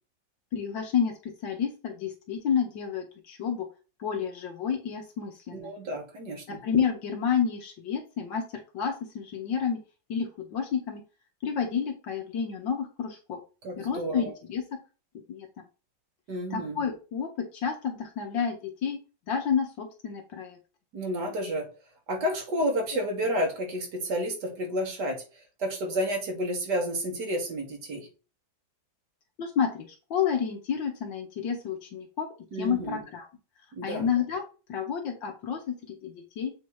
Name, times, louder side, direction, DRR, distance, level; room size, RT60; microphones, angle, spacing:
voice 1, 0.5-3.7 4.0-5.7 6.5-8.5 8.7-9.8 10.1-11.0 11.4-13.4 13.8-14.8 15.3-15.5 16.5-19.0 19.3-20.6 29.4-32.3 32.6-33.3 33.8-34.4 34.7-36.5, left 7 dB, 75° left, 2 dB, 1.6 m, -30 dB
voice 2, 5.5-6.6 13.6-14.3 16.3-16.8 20.9-21.7 22.1-25.2 25.6-28.1 32.5-33.0 33.7-34.1, equal, 60° right, 3 dB, 2.1 m, -30 dB
7.4 x 2.8 x 4.7 m, 0.34 s
omnidirectional pair, 2.1 m